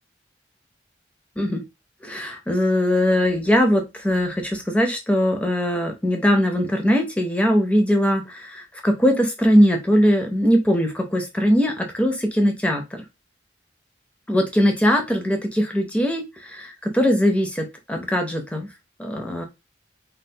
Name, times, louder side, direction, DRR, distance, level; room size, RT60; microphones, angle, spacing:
voice 1, 2.0-13.0 14.3-18.7 19.0-19.4, equal, 5° left, 3 dB, 0.6 m, -21 dB
3.4 x 2.4 x 2.7 m, 0.24 s
head